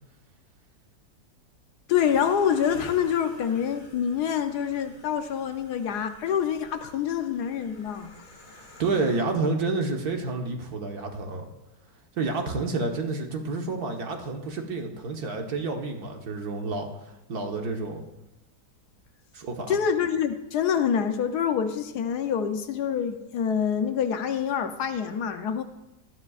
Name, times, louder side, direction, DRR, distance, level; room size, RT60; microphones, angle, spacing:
voice 1, 1.9-8.1 19.7-25.6, left 8 dB, 70° left, 8 dB, 1.3 m, -26 dB
sound 1, 1.9-9.2, left 2 dB, 55° left, 2.2 m, -48 dB
voice 2, 8.5-11.5 12.2-18.0 19.3-19.8, right 3 dB, 60° right, 2 dB, 1.7 m, -29 dB
19.0 x 12.5 x 2.4 m, 0.97 s
omnidirectional pair, 1.8 m